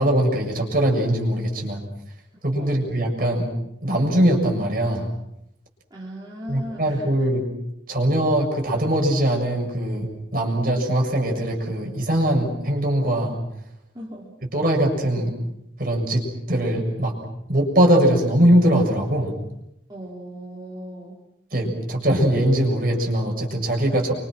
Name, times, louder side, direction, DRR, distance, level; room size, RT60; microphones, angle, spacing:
voice 1, 0.0-1.8 2.4-3.5 3.8-5.1 6.5-7.5 7.9-13.4 14.5-15.4 15.8-17.2 17.5-19.4 21.5-24.1, right 1 dB, 50° right, 1 dB, 7.2 m, -21 dB
voice 2, 2.6-2.9 5.9-7.0 13.9-14.3 19.9-21.2, equal, 20° right, -5 dB, 4.2 m, -37 dB
29.0 x 25.5 x 6.2 m, 0.79 s
head